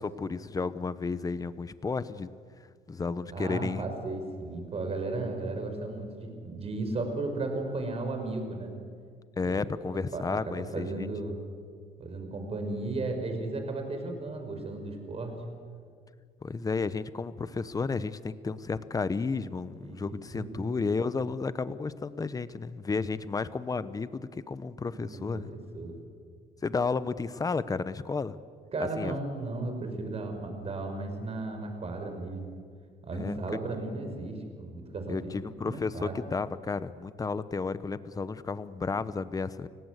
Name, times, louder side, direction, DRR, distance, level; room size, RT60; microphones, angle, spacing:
voice 1, 0.0-2.3 2.9-3.9 9.4-11.1 16.4-25.5 26.6-28.4 29.0-29.1 33.1-33.6 35.1-39.7, left 4 dB, 20° left, 15 dB, 0.9 m, -32 dB
voice 2, 3.3-8.7 9.4-9.6 10.1-11.3 12.0-15.4 19.8-20.7 24.9-26.0 28.7-32.5 33.0-35.2 35.7-36.2, right 2 dB, 35° right, 5 dB, 5.4 m, -35 dB
30.0 x 17.5 x 8.2 m, 2.1 s
cardioid pair, 110°, 17 cm